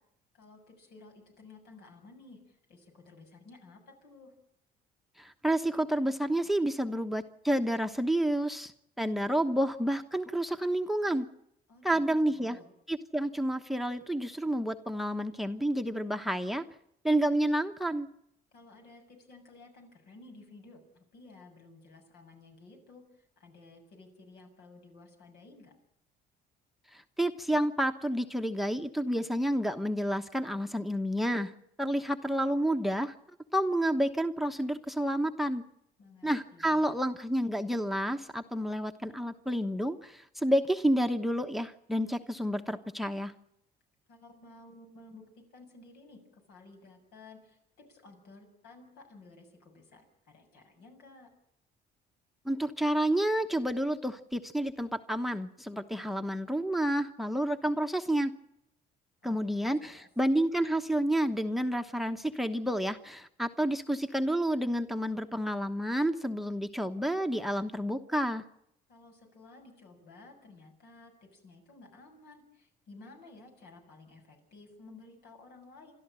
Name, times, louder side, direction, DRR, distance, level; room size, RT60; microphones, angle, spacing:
voice 1, 0.3-4.3 11.7-12.7 18.5-25.8 36.0-36.9 44.1-51.3 59.2-60.1 68.9-75.9, left 3 dB, 75° left, 4 dB, 7.2 m, -54 dB
voice 2, 5.2-8.7 9.0-11.3 11.8-12.6 12.9-16.6 17.0-18.1 26.9-31.5 31.8-33.1 33.5-35.6 36.2-43.3 52.4-58.3 59.2-68.4, right 1 dB, ahead, 9 dB, 1.1 m, -30 dB
29.0 x 13.0 x 9.0 m, 0.78 s
cardioid pair, 110°, 17 cm